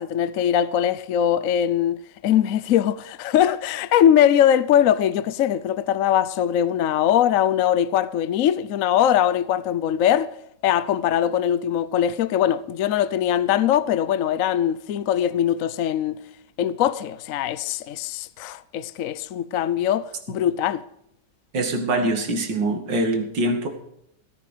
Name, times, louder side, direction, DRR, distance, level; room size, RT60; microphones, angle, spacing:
voice 1, 0.0-10.3 10.6-16.2 16.6-20.8, left 10 dB, 60° left, 0.9 m, -21 dB
voice 2, 21.5-23.7, right 1 dB, 80° right, 2.8 m, -23 dB
17.0 x 11.0 x 5.0 m
omnidirectional pair, 1.9 m